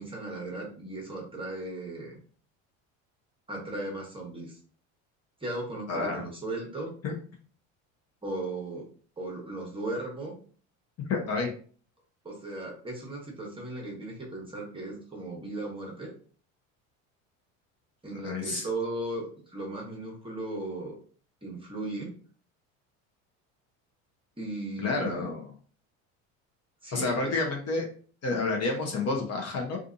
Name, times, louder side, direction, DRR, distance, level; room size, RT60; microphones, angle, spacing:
voice 1, 0.0-2.2 3.5-4.6 5.4-6.9 8.2-8.8 9.2-10.4 12.2-16.1 18.0-20.9 21.4-22.1 24.4-25.3 26.8-27.3, right 2 dB, 15° right, -1 dB, 1.0 m, -36 dB
voice 2, 5.9-6.2 7.0-7.1 11.1-11.5 18.2-18.7 24.8-25.5 26.9-27.8 28.2-29.8, left 3 dB, 40° left, 1 dB, 0.8 m, -29 dB
2.6 x 2.5 x 2.5 m, 0.43 s
supercardioid pair, 90°, 40 cm